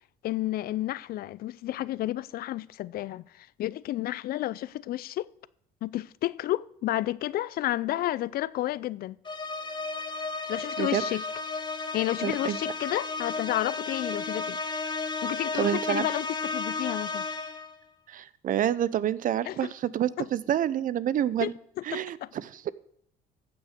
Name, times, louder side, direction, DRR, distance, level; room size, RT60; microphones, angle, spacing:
voice 1, 0.2-5.3 5.8-9.2 10.5-11.2 11.9-14.6 15.2-17.3 19.5-19.7 20.2-20.3 21.4-21.5 21.9-22.3, left 14 dB, 60° left, 0.5 m, -31 dB
sound 1, 9.3-17.8, left 3 dB, 25° left, 1.3 m, -33 dB
voice 2, 12.2-12.6 15.6-16.1 18.1-21.5 21.8-22.7, right 11 dB, 55° right, 0.6 m, -28 dB
15.0 x 6.3 x 6.6 m
cardioid pair, 110°, 17 cm